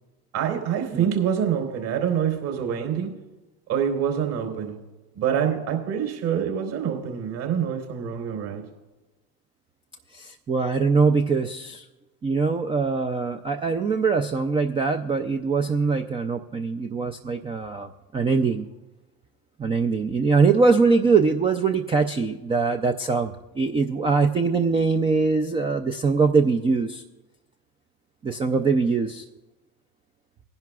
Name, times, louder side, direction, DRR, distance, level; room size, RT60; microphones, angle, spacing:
voice 1, 0.3-3.1 3.7-4.8 5.1-8.6, right 8 dB, 60° right, 2 dB, 3.8 m, -26 dB
voice 2, 10.1-11.9 12.2-18.7 19.6-27.0 28.2-29.2, right 4 dB, 15° right, 6 dB, 0.3 m, -22 dB
20.0 x 10.5 x 2.3 m, 1.1 s
hypercardioid pair, 85°, 47 cm